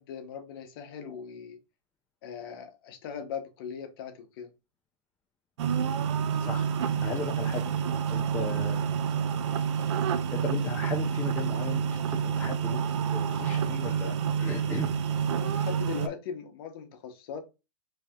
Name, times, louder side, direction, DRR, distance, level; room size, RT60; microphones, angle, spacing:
voice 1, 0.0-1.6 2.2-4.5 15.2-17.4, left 7 dB, 45° left, 0.8 m, -39 dB
sound 1, 5.6-16.1, right 7 dB, 65° right, 0.5 m, -28 dB
voice 2, 6.4-8.8 10.3-15.0, left 4 dB, 10° left, 0.3 m, -37 dB
3.2 x 2.7 x 3.5 m
supercardioid pair, 160°, 16 cm